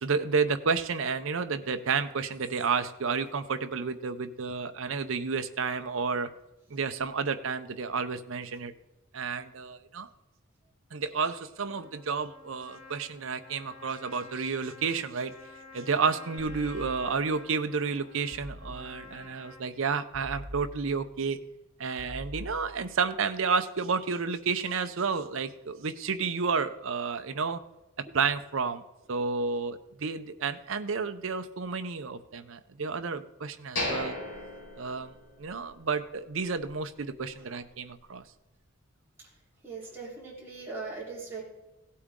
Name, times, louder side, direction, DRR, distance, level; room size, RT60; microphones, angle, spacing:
voice 1, 0.0-6.3 6.7-8.7 9.1-10.1 10.9-15.3 15.7-21.4 21.8-27.6 28.1-28.8 29.1-34.2 34.8-35.1 35.4-38.2, right 5 dB, 70° right, 9 dB, 0.7 m, -31 dB
Trumpet, 11.6-19.7, left 3 dB, 40° left, 2.5 m, -50 dB
sound 1, 16.4-17.4 18.3-19.2 20.1-21.2 22.0-23.1, equal, 40° right, 3.3 m, -44 dB
sound 2, 33.8-35.7 36.0-36.1 36.6-36.8, left 1 dB, 65° left, 4.8 m, -35 dB
voice 2, 39.6-41.4, right 4 dB, 10° right, -6 dB, 3.8 m, -39 dB
16.5 x 8.5 x 3.7 m, 1.0 s
head